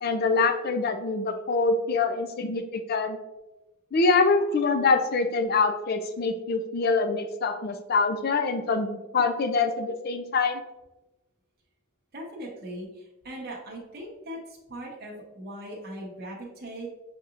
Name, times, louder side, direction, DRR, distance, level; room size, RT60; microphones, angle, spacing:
voice 1, 0.0-3.2 3.9-10.6, left 4 dB, 45° left, 7 dB, 0.4 m, -25 dB
voice 2, 12.1-16.9, right 1 dB, 50° right, -3 dB, 0.8 m, -39 dB
6.8 x 2.8 x 2.5 m, 1.0 s
head